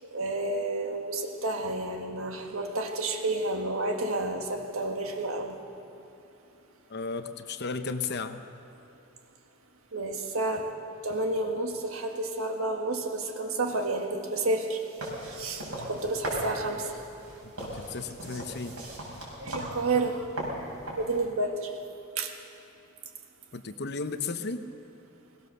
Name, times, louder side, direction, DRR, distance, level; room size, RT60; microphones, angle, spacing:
voice 1, 0.0-5.6 9.9-10.7 11.0-14.8 15.3-17.0 19.4-20.4 21.0-21.7 22.2-22.4, right 2 dB, 70° right, 4 dB, 1.8 m, -30 dB
voice 2, 6.9-8.4 17.6-18.8 23.5-24.6, left 4 dB, 50° left, 9 dB, 0.9 m, -34 dB
sound 1, 15.0-21.2, right 1 dB, 90° right, 6.4 m, -38 dB
21.5 x 18.5 x 6.8 m, 2.8 s
head